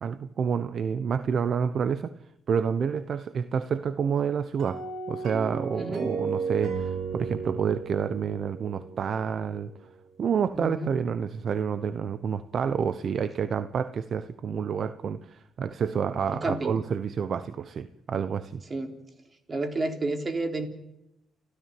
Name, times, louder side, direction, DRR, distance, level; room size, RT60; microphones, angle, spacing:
voice 1, 0.0-2.1 2.5-4.8 5.1-9.7 10.2-18.6, right 7 dB, 55° right, 13 dB, 1.0 m, -29 dB
sound 1, 4.6-9.8, right 5 dB, 75° right, 4.8 m, -34 dB
voice 2, 5.7-6.1 10.5-10.9 16.3-16.8 18.7-19.0 19.5-20.7, right 2 dB, 35° right, 6 dB, 3.6 m, -30 dB
30.0 x 13.5 x 9.3 m, 0.87 s
cardioid pair, 90°, 0 cm